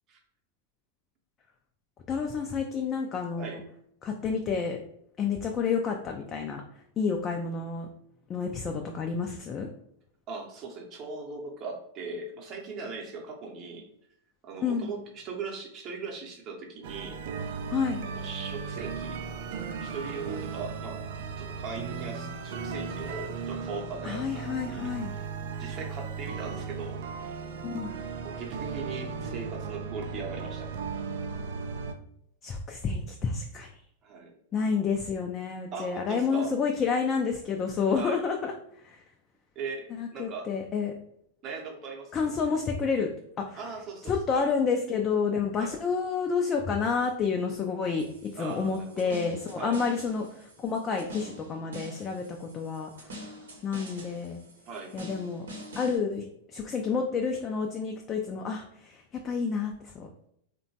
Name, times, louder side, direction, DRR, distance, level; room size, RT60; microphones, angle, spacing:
voice 1, 2.1-3.6 4.0-4.8 5.2-6.6 7.0-7.9 8.3-9.7 14.6-14.9 17.7-18.1 24.0-25.1 27.6-27.9 32.4-33.7 34.5-38.5 38.8-39.0 39.9-40.9 42.1-43.1 43.4-43.6 44.1-53.3 53.6-54.4 54.9-55.5 55.8-56.3 56.5-60.1, left 5 dB, 30° left, 2 dB, 0.3 m, -29 dB
voice 2, 10.3-13.9 14.4-17.2 18.0-19.2 19.8-21.0 21.4-25.3 25.6-27.0 28.2-30.8 34.0-34.3 35.7-36.5 37.9-38.2 39.6-39.9 40.1-40.5 41.4-42.3 43.5-44.5 45.5-45.7 48.3-49.2 49.5-49.8 54.7-54.9, right 4 dB, 40° right, 1 dB, 0.7 m, -39 dB
sound 1, 16.8-31.9, right 5 dB, 65° right, 0.3 m, -36 dB
sound 2, 48.0-56.0, equal, 85° right, 0.8 m, -45 dB
2.8 x 2.2 x 2.7 m, 0.72 s
hypercardioid pair, 100°, 0 cm